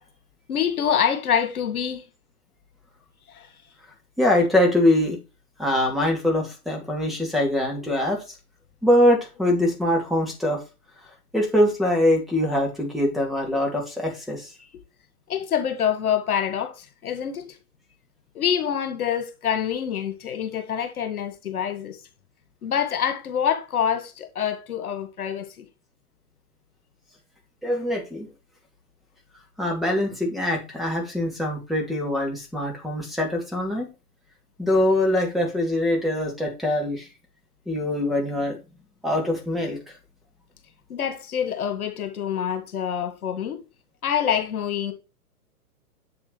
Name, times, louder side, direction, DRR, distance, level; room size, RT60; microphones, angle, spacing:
voice 1, 0.5-2.1 3.3-3.5 15.3-17.6 18.3-22.0 22.6-25.7 40.9-43.6 44.0-44.9, left 8 dB, 65° left, 2.0 m, -26 dB
voice 2, 4.2-5.2 5.6-8.4 8.8-10.6 11.3-14.5 27.6-28.3 29.6-33.9 34.6-37.1 37.7-38.6 39.0-39.8, left 1 dB, ahead, 2.7 m, -23 dB
7.8 x 7.1 x 3.2 m
hypercardioid pair, 130°, 46 cm